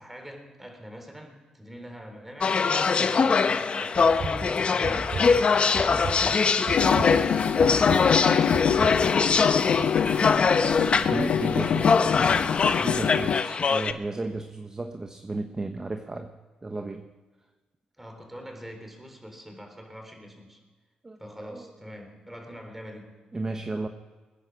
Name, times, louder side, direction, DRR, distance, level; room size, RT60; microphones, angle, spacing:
voice 1, 0.0-2.6 2.9-6.7 7.1-11.1 11.4-13.2 18.0-20.6 21.2-23.2, equal, 10° right, 4 dB, 4.0 m, -44 dB
sound 1, 2.4-13.9, left 5 dB, 50° left, 0.9 m, -23 dB
sound 2, 3.9-9.3, right 4 dB, 70° right, 4.7 m, -36 dB
sound 3, 6.7-13.4, left 8 dB, 70° left, 0.6 m, -26 dB
voice 2, 11.1-12.2 12.8-16.3 16.6-17.1 21.0-21.2 21.5-21.7 23.3-23.9, right 2 dB, 25° right, 6 dB, 1.1 m, -33 dB
21.0 x 10.5 x 6.1 m, 1.3 s
cardioid pair, 75°, 3 cm